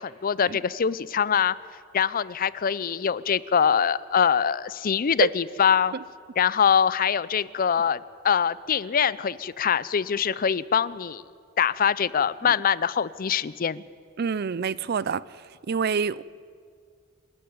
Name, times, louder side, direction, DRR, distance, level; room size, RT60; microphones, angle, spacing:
voice 1, 0.0-1.5 1.9-5.9 6.4-11.2 11.6-13.8, left 7 dB, 45° left, 0.5 m, -23 dB
voice 2, 14.2-15.4 15.7-16.2, right 6 dB, 50° right, 0.5 m, -27 dB
27.0 x 12.0 x 9.5 m
head